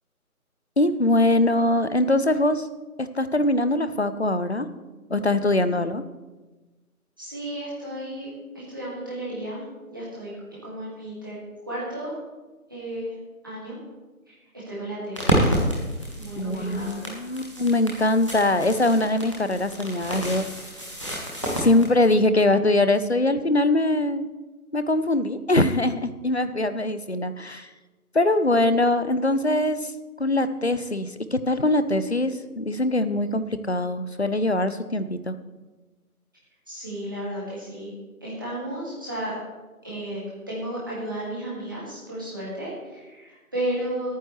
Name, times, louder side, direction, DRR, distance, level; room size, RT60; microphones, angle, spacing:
voice 1, 0.8-2.7 3.0-4.7 5.1-6.0 16.4-20.4 21.6-24.3 24.7-27.7 28.1-29.9 30.2-35.3, left 2 dB, 50° left, 11 dB, 0.6 m, -22 dB
voice 2, 7.2-9.6 9.9-11.4 11.7-12.1 12.7-13.1 13.4-13.8 14.3-14.4 14.7-15.6 16.2-17.0 36.7-37.9 38.2-39.3 39.8-44.2, right 1 dB, 15° right, -8 dB, 2.2 m, -33 dB
sound 1, 15.1-21.9, equal, 20° left, 1.4 m, -29 dB
19.0 x 9.3 x 3.3 m, 1.2 s
figure-of-eight pair, 170°, 44 cm